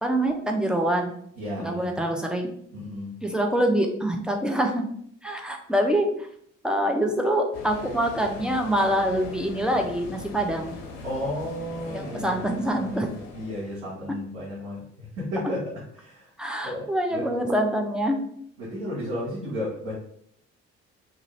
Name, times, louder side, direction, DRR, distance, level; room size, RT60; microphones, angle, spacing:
voice 1, 0.0-1.1 1.6-2.5 3.2-4.8 5.2-6.3 6.6-10.8 11.9-13.1 16.4-18.2, right 1 dB, ahead, 2 dB, 0.6 m, -25 dB
voice 2, 1.4-2.0 2.7-3.1 11.0-13.0 13.3-15.6 15.9-16.3 16.6-17.3 18.6-19.9, left 1 dB, 85° right, -8 dB, 1.0 m, -33 dB
sound 1, 7.5-13.8, left 3 dB, 70° left, 0.6 m, -40 dB
2.5 x 2.5 x 3.1 m, 0.67 s
hypercardioid pair, 50°, 35 cm